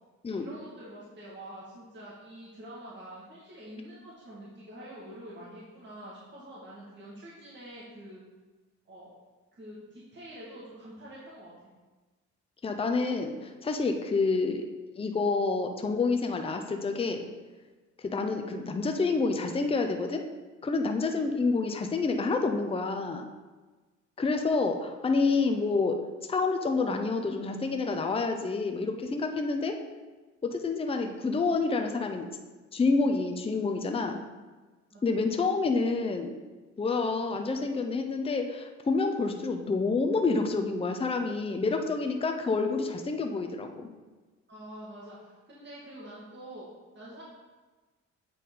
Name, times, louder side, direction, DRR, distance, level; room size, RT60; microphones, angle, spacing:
voice 1, 0.3-8.2 8.9-9.1 9.5-11.5 34.9-35.2 44.5-46.7 46.9-47.2, right 1 dB, 35° right, -7 dB, 1.9 m, -46 dB
voice 2, 12.6-14.6 15.0-17.2 18.0-20.2 20.6-23.3 24.2-26.0 26.3-29.8 30.4-32.3 32.7-34.2 35.0-36.3 36.8-43.9, left 3 dB, 20° left, 5 dB, 0.6 m, -28 dB
8.3 x 4.1 x 3.8 m, 1.3 s
cardioid pair, 90°, 30 cm